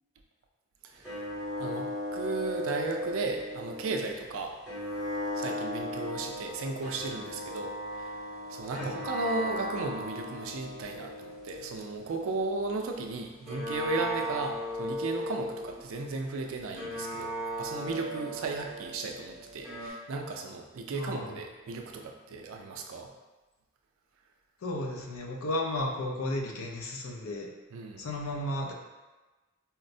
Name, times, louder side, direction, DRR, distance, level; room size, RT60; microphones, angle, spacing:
sound 1, 1.0-4.1 4.7-13.0 13.5-16.0 16.7-19.9, equal, 5° right, 0.7 m, -37 dB
voice 1, 2.1-4.6 5.3-8.2 8.5-17.3 17.6-23.1 27.7-28.0, right 3 dB, 70° right, 2 dB, 0.4 m, -35 dB
voice 2, 20.9-21.4 24.6-27.5 28.0-28.7, left 1 dB, 75° left, 0 dB, 0.5 m, -34 dB
4.2 x 2.0 x 2.6 m, 1.2 s
head